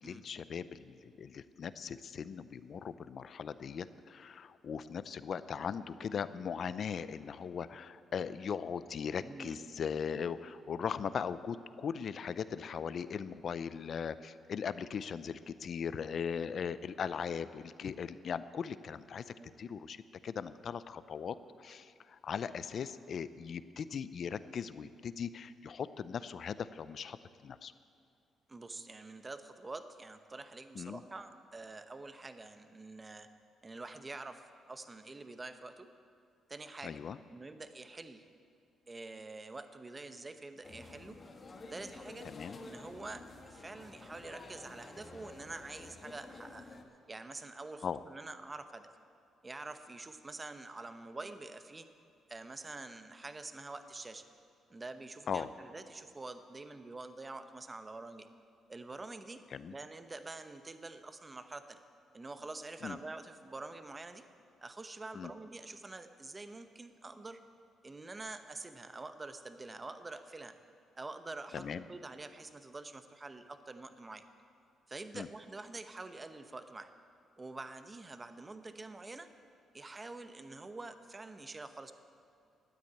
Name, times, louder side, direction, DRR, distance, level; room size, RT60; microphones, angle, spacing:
voice 1, 0.0-19.2 19.6-20.0 20.2-21.4 21.6-27.2 27.4-27.7 30.8-31.0 36.8-37.2 42.3-42.6 47.8-48.0 55.3-55.5 59.5-59.7 62.8-63.0 65.2-65.3 71.5-71.8 75.1-75.3, left 7 dB, 55° left, 15 dB, 0.5 m, -39 dB
voice 2, 9.2-9.8 19.4-19.5 28.5-33.3 33.6-35.9 36.5-37.0 37.3-38.2 38.9-41.2 41.7-42.3 42.6-46.8 47.1-48.9 49.4-51.9 52.3-54.2 54.7-58.3 58.7-59.4 59.7-61.8 62.1-64.2 64.6-67.4 67.8-70.6 71.0-74.2 74.9-76.9 77.4-79.3 79.7-81.9, right 3 dB, 25° right, 9 dB, 0.9 m, -46 dB
sound 1, 40.6-46.8, left 3 dB, 35° left, 1.4 m, -51 dB
13.0 x 9.4 x 8.7 m, 2.4 s
cardioid pair, 90°, 0 cm